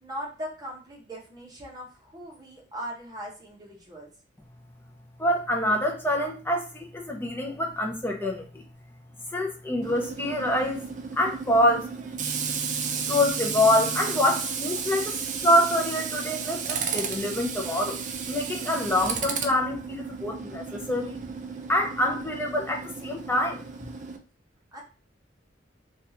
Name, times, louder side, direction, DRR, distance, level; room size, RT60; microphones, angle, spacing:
voice 1, 0.0-4.1 24.7-24.8, equal, 20° right, -3 dB, 1.0 m, -39 dB
voice 2, 5.2-8.6 9.3-10.8 11.1-12.0 13.1-18.0 18.3-21.2 21.7-23.6, left 1 dB, 10° left, 2 dB, 0.5 m, -26 dB
Tools, 9.8-24.2, right 6 dB, 40° right, 0.4 m, -33 dB
3.5 x 2.3 x 2.8 m, 0.34 s
head